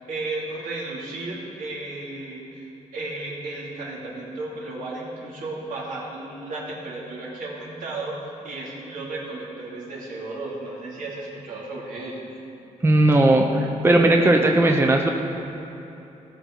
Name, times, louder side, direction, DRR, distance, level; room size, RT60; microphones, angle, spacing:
voice 1, 0.1-12.3, right 2 dB, 80° right, -5 dB, 2.9 m, -34 dB
voice 2, 12.8-15.1, right 1 dB, 20° right, 2 dB, 0.7 m, -17 dB
18.5 x 6.7 x 4.7 m, 3.0 s
wide cardioid pair, 145°, 13 cm